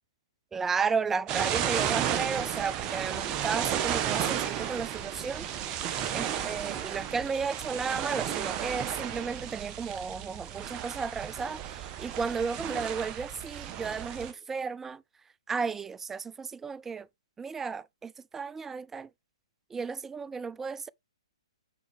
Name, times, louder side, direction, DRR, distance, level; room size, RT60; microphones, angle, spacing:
voice 1, 0.5-5.5 6.1-15.0 15.5-17.1 17.4-19.1 19.7-20.9, right 5 dB, 10° right, 0.4 m, -33 dB
sound 1, 1.3-14.3, right 10 dB, 25° right, 1.2 m, -33 dB
9.6 x 4.2 x 4.6 m
hypercardioid pair, 135°, 3 cm